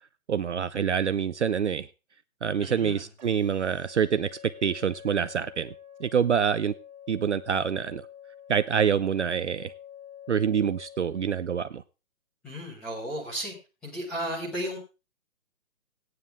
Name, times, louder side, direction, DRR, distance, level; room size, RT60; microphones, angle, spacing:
voice 1, 0.3-1.9 2.4-5.7 6.0-6.7 7.1-8.1 8.5-9.7 10.3-11.8, right 7 dB, 55° right, 0.5 m, -26 dB
voice 2, 2.6-3.0 12.4-13.5 13.8-14.8, equal, ahead, 1.1 m, -34 dB
sound 1, 3.2-11.2, left 9 dB, 30° right, 1.9 m, -48 dB
14.5 x 9.4 x 3.5 m
hypercardioid pair, 175°, 42 cm